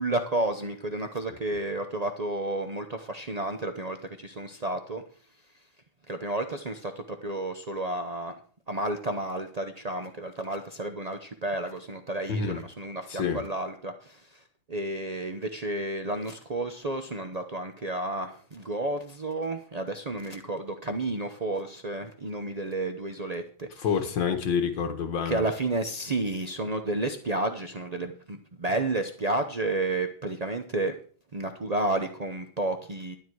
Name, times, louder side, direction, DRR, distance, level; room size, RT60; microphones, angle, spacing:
voice 1, 0.0-5.0 6.1-8.3 8.7-14.2 14.7-23.9 25.2-30.9 31.3-33.2, right 2 dB, 70° right, 6 dB, 0.3 m, -31 dB
voice 2, 12.3-12.6 13.1-13.4 23.8-25.5, left 6 dB, 70° left, 7 dB, 1.8 m, -28 dB
12.0 x 10.0 x 4.6 m, 0.43 s
omnidirectional pair, 2.1 m